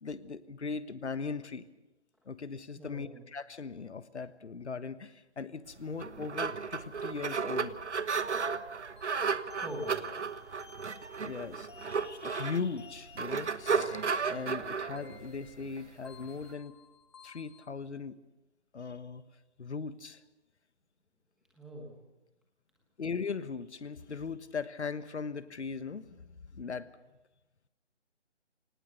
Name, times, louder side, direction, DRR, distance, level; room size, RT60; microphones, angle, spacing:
voice 1, 0.0-1.6 2.2-7.8 11.2-14.0 14.3-16.8 17.2-18.2 18.7-19.2 19.6-20.2 23.0-26.9, left 5 dB, 75° left, 13 dB, 1.4 m, -39 dB
voice 2, 2.7-3.2 9.6-10.0 21.5-22.0, equal, ahead, -2 dB, 1.2 m, -42 dB
sound 1, 5.8-16.5, right 5 dB, 80° right, 1.3 m, -34 dB
sound 2, 9.0-17.7, left 4 dB, 25° left, 0.9 m, -56 dB
24.5 x 19.0 x 6.7 m, 1.1 s
hypercardioid pair, 165°, 35 cm